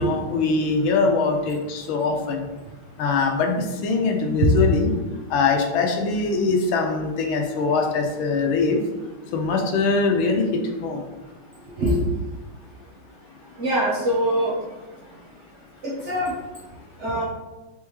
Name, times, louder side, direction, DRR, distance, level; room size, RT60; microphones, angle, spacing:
voice 1, 0.0-2.4 3.0-4.9 5.3-8.8 9.3-10.5 10.8-11.0, left 4 dB, 85° left, 3 dB, 1.5 m, -22 dB
voice 2, 13.6-14.5 15.8-16.3 17.0-17.2, right 1 dB, 55° right, -5 dB, 0.8 m, -22 dB
4.5 x 3.5 x 3.0 m, 1.2 s
omnidirectional pair, 2.2 m